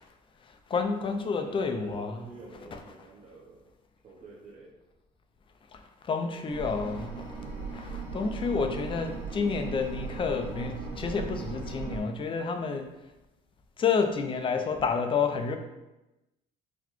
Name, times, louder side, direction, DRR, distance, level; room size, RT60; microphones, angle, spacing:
voice 1, 0.4-2.2 5.7-12.9 13.8-15.6, left 5 dB, 30° left, 5 dB, 0.4 m, -30 dB
voice 2, 1.4-3.7 4.0-4.7, right 2 dB, 40° right, -5 dB, 0.7 m, -48 dB
sound 1, 6.5-12.0, right 4 dB, 60° right, 1.2 m, -38 dB
4.0 x 2.2 x 3.0 m, 1.0 s
cardioid pair, 110°, 17 cm